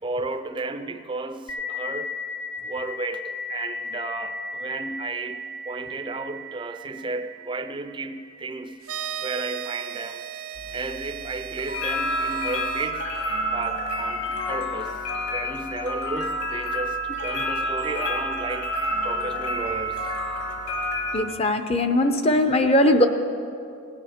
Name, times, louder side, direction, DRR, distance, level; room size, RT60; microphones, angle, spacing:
voice 1, 0.0-2.1 2.6-8.8 9.2-10.2 10.7-13.1 13.5-15.0 15.3-18.7 19.0-20.1, right 3 dB, 20° right, 9 dB, 0.5 m, -33 dB
sound 1, 1.5-10.7, left 2 dB, 75° left, 1.4 m, -37 dB
sound 2, 8.8-12.9, right 9 dB, 80° right, 0.7 m, -36 dB
sound 3, 10.6-21.2, equal, 55° left, 1.5 m, -29 dB
voice 2, 21.1-23.1, left 1 dB, 30° left, 8 dB, 0.6 m, -20 dB
17.5 x 9.6 x 5.1 m, 2.5 s
head